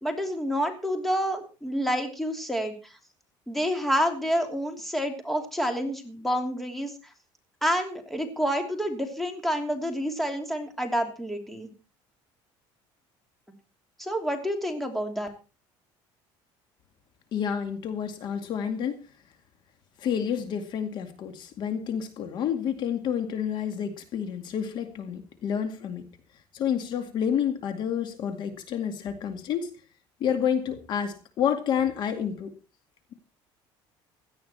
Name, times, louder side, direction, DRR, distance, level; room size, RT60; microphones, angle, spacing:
voice 1, 0.0-3.0 3.5-6.9 7.6-11.7 14.0-15.3, equal, ahead, 4 dB, 3.0 m, -28 dB
voice 2, 17.3-19.1 20.0-26.1 26.5-29.7 30.2-32.5, left 8 dB, 50° left, 7 dB, 2.2 m, -29 dB
17.0 x 12.5 x 4.4 m, 0.33 s
cardioid pair, 145°, 10 cm